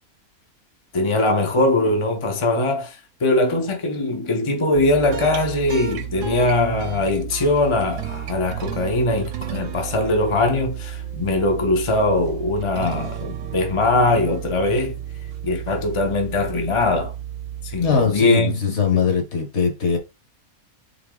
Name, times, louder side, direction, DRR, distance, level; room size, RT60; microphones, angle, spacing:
voice 1, 0.9-15.0 15.4-17.1 17.6-19.1, left 2 dB, 30° left, 0.6 m, -21 dB
sound 1, 4.7-18.3, right 10 dB, 65° right, 1.0 m, -32 dB
voice 2, 17.8-20.0, left 4 dB, 55° left, 1.3 m, -20 dB
4.0 x 3.6 x 3.6 m
omnidirectional pair, 1.5 m